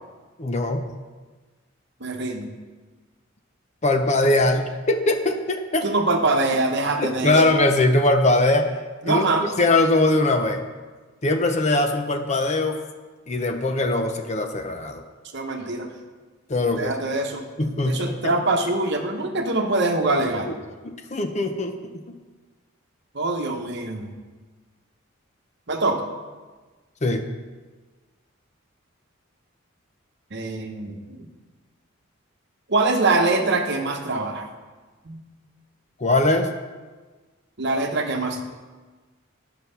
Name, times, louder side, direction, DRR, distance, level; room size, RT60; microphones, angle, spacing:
voice 1, 0.4-0.9 3.8-5.9 7.0-8.7 9.1-10.6 11.2-12.8 13.3-15.0 16.5-16.9 17.6-18.3 20.5-20.6 20.8-22.0 27.0-27.3 36.0-36.5, left 2 dB, 35° left, 6 dB, 0.6 m, -21 dB
voice 2, 2.0-2.5 5.8-7.4 9.0-9.5 15.3-15.9 16.8-17.4 17.9-20.6 23.1-24.1 25.7-26.0 30.3-31.3 32.7-34.5 35.0-35.2 37.6-38.4, right 2 dB, 55° right, 3 dB, 1.0 m, -24 dB
10.0 x 6.0 x 5.6 m, 1.3 s
head